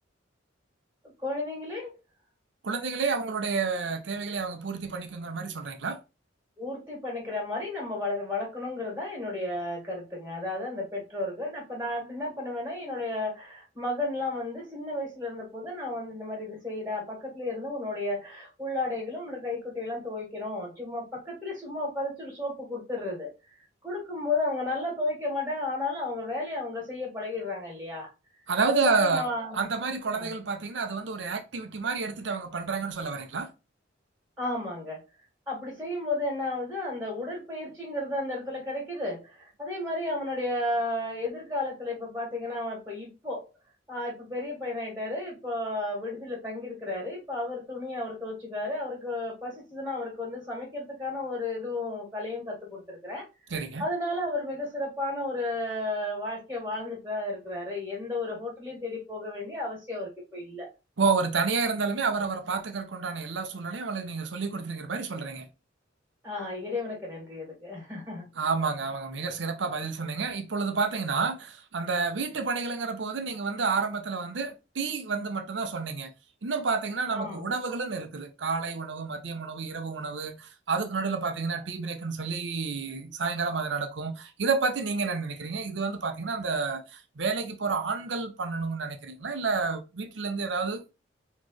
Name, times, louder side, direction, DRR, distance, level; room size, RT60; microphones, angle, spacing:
voice 1, 1.2-1.9 6.6-23.3 23.8-28.1 28.6-29.7 30.1-30.3 34.4-35.0 35.5-43.5 43.9-53.3 53.8-60.7 66.2-68.3 77.1-77.5, left 2 dB, 10° right, 1.9 m, -33 dB
voice 2, 2.6-6.0 28.5-29.3 29.5-33.5 53.5-53.8 61.0-65.5 68.4-76.1 76.4-90.8, right 4 dB, 70° right, 0.7 m, -30 dB
4.2 x 3.1 x 3.1 m
head